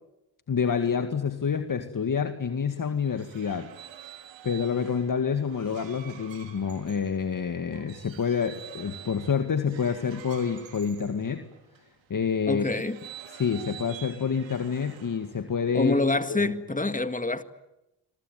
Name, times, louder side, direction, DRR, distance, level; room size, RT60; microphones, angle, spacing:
voice 1, 0.5-3.7 4.4-11.4 12.1-12.7 13.4-16.0 16.3-16.5, left 6 dB, 45° left, 2.1 m, -28 dB
sound 1, 2.8-11.9 12.5-15.5, right 10 dB, 85° right, 3.7 m, -48 dB
voice 2, 12.5-13.0 15.7-17.4, left 2 dB, 15° left, 2.0 m, -26 dB
27.0 x 23.5 x 9.3 m
cardioid pair, 70°, 44 cm